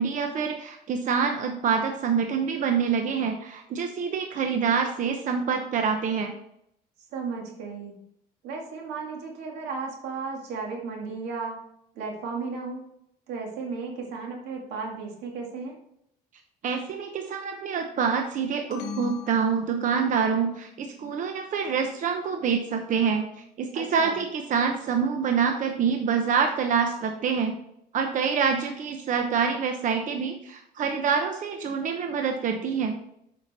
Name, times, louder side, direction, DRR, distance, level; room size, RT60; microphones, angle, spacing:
voice 1, 0.0-6.3 16.6-23.2 23.6-27.6 27.9-32.9, right 6 dB, 50° right, 5 dB, 0.9 m, -26 dB
voice 2, 7.1-7.9 8.4-11.7 12.0-12.9 13.3-15.8 23.7-24.2, right 4 dB, 85° right, 1 dB, 2.1 m, -34 dB
sound 1, 18.7-20.4, left 6 dB, 75° left, 1.1 m, -39 dB
7.2 x 5.7 x 4.1 m, 0.75 s
cardioid pair, 110°, 17 cm